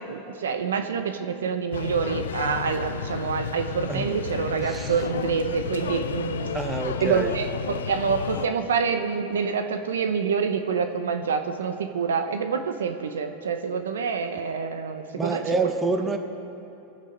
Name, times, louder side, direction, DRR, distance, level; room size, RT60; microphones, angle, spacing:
voice 1, 0.0-6.5 7.0-15.4, right 6 dB, 90° right, 7 dB, 0.9 m, -27 dB
sound 1, 1.7-8.5, left 7 dB, 85° left, 0.6 m, -32 dB
voice 2, 4.6-4.9 6.5-7.3 15.1-16.2, right 3 dB, 15° right, 4 dB, 1.4 m, -27 dB
22.0 x 8.6 x 5.2 m, 2.9 s
hypercardioid pair, 115°, 0 cm